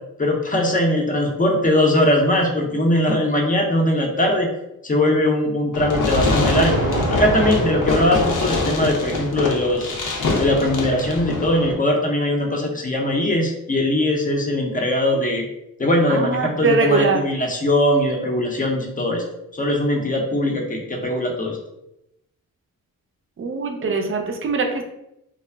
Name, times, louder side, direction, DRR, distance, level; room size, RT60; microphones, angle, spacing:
voice 1, 0.2-4.5 4.8-6.8 7.1-10.0 10.4-15.4 15.8-19.2 19.5-21.6, left 1 dB, 25° left, 1 dB, 0.6 m, -20 dB
Fireworks, 5.7-11.7, left 2 dB, 60° left, 0.6 m, -23 dB
Thunder, 6.4-8.9, right 4 dB, 85° right, 0.5 m, -28 dB
voice 2, 16.1-17.2 23.4-24.8, right 4 dB, 35° right, 3 dB, 0.5 m, -21 dB
2.3 x 2.0 x 3.3 m, 0.85 s
cardioid pair, 75°, 35 cm